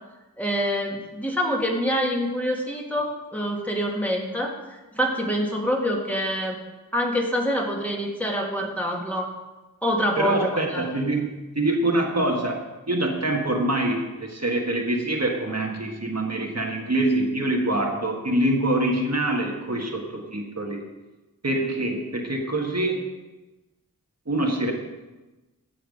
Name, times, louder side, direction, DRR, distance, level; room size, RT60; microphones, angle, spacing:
voice 1, 0.4-6.6 6.9-9.3 9.8-10.8, equal, 5° left, -2 dB, 2.3 m, -26 dB
voice 2, 10.2-20.8 21.4-23.1 24.3-24.7, right 1 dB, 45° right, 0 dB, 1.6 m, -25 dB
15.5 x 5.9 x 5.2 m, 1.1 s
wide cardioid pair, 45°, 35 cm